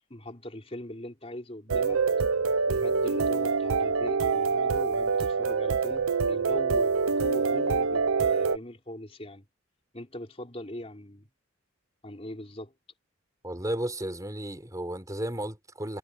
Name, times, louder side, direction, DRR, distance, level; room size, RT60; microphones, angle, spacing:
voice 1, 0.1-2.0 2.7-9.4 9.9-11.3 12.0-12.7, left 1 dB, 30° left, 3.9 m, -40 dB
sound 1, 1.7-8.6, right 5 dB, 85° right, 0.8 m, -25 dB
voice 2, 13.4-16.0, right 1 dB, 15° right, 4.5 m, -33 dB
head